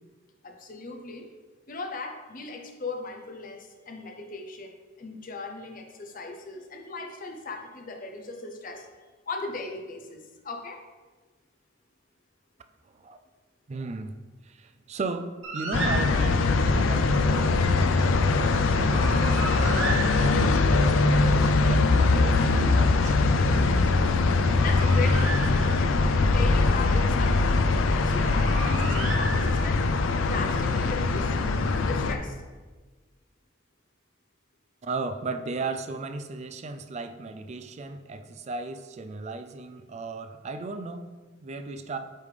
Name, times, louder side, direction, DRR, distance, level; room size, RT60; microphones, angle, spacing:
voice 1, 0.4-1.3 1.7-8.9 9.3-10.8 24.0-27.6 28.0-29.8 30.3-31.3 31.9-32.4, left 3 dB, 45° left, 3 dB, 0.7 m, -37 dB
voice 2, 13.7-14.1 14.4-23.2 34.8-41.1 41.4-42.0, right 3 dB, 35° right, 9 dB, 0.3 m, -36 dB
Bird, 15.4-16.6 18.7-20.7 24.2-26.0 28.0-29.9, right 2 dB, 70° right, 0.8 m, -35 dB
sound 1, 15.7-32.1, left 3 dB, 80° left, 0.4 m, -22 dB
8.3 x 3.5 x 3.3 m, 1.3 s
head